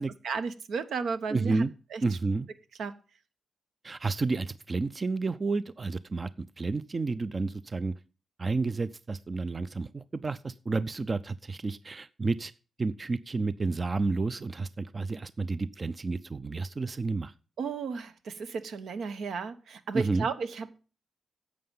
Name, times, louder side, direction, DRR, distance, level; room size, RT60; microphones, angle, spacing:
voice 1, 0.2-2.0 2.8-2.9 17.6-20.8, right 5 dB, 80° right, 9 dB, 1.1 m, -34 dB
voice 2, 1.3-1.7 2.0-2.5 3.8-6.3 6.6-7.9 8.4-12.5 12.8-17.3 19.9-20.3, right 3 dB, 35° right, 15 dB, 0.5 m, -30 dB
11.5 x 7.7 x 5.5 m, 0.35 s
cardioid pair, 100°, 0 cm